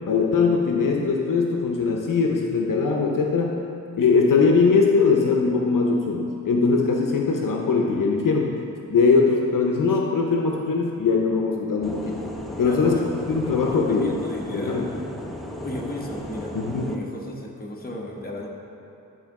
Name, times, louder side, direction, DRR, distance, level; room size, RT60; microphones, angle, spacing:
voice 1, 0.1-3.6 4.0-8.5 8.9-12.2 12.6-13.0 13.3-14.1 14.5-14.9 16.5-16.9, left 4 dB, 70° left, 1 dB, 0.7 m, -21 dB
sound 1, 11.8-17.0, equal, ahead, 0.7 m, -35 dB
voice 2, 12.6-15.0 15.6-16.6 16.9-18.5, left 1 dB, 25° left, -1 dB, 1.1 m, -35 dB
10.5 x 3.8 x 4.7 m, 2.6 s
wide cardioid pair, 80°, 33 cm